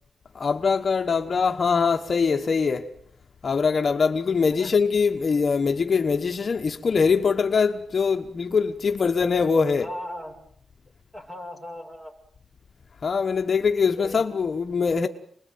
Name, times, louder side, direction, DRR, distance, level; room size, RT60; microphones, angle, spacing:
voice 1, 0.3-2.9 3.4-9.9 13.0-15.1, left 5 dB, 40° left, 1.3 m, -23 dB
voice 2, 9.8-10.3 11.1-12.1 14.0-14.2, left 1 dB, 15° right, 6.5 m, -37 dB
29.0 x 21.0 x 9.4 m
wide cardioid pair, 175°, 0 cm